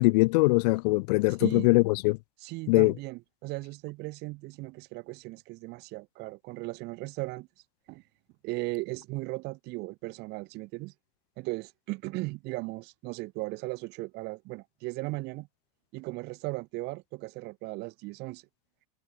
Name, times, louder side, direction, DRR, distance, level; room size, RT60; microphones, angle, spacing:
voice 1, 0.0-2.2 2.7-2.9, left 24 dB, 70° left, 0.5 m, -22 dB
voice 2, 2.4-7.5 7.9-8.0 8.4-10.9 11.4-15.5 15.9-18.4, right 23 dB, 50° right, 5.3 m, -37 dB
supercardioid pair, 145°, 21 cm